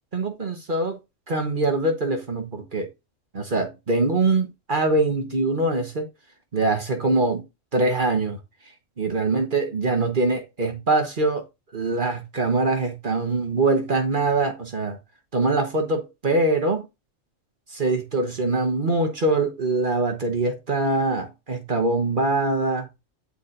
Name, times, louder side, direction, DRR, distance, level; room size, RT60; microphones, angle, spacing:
voice 1, 0.1-1.0 1.3-2.9 3.3-6.1 6.5-7.4 7.7-8.4 9.0-11.4 11.7-15.0 15.3-16.8 17.7-22.9, right 2 dB, 45° right, 1.3 m, -23 dB
9.9 x 4.2 x 2.5 m
omnidirectional pair, 1.3 m